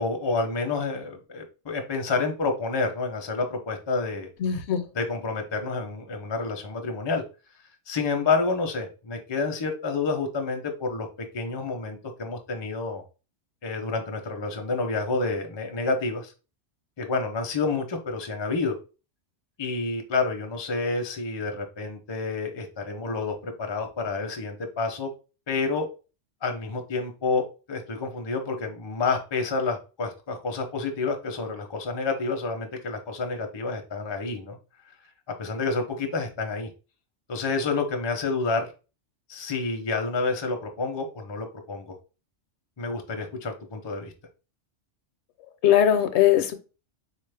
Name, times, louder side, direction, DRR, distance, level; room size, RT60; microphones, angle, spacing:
voice 1, 0.0-4.3 4.9-7.2 7.9-11.1 11.3-13.0 13.6-16.3 17.0-18.8 19.6-25.1 25.5-25.9 26.4-34.6 35.4-36.7 37.3-38.7 39.3-42.0 42.8-44.1, left 3 dB, 35° left, 0.5 m, -29 dB
voice 2, 4.4-4.8 45.6-46.5, left 10 dB, 70° left, 0.8 m, -20 dB
3.8 x 2.4 x 3.3 m
omnidirectional pair, 1.2 m